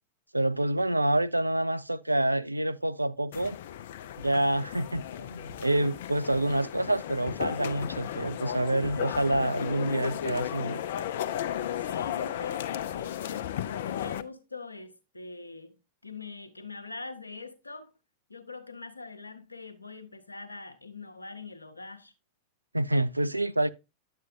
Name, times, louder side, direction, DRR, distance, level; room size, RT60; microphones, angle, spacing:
voice 1, 0.3-3.6 4.2-10.8 22.7-23.7, right 1 dB, 85° right, 0.3 m, -27 dB
sound 1, 3.3-14.2, left 10 dB, 55° left, 0.4 m, -35 dB
voice 2, 11.8-15.8 16.0-17.9 18.3-22.1, left 4 dB, 80° left, 0.8 m, -43 dB
9.8 x 7.4 x 2.5 m
figure-of-eight pair, 90°, 0 cm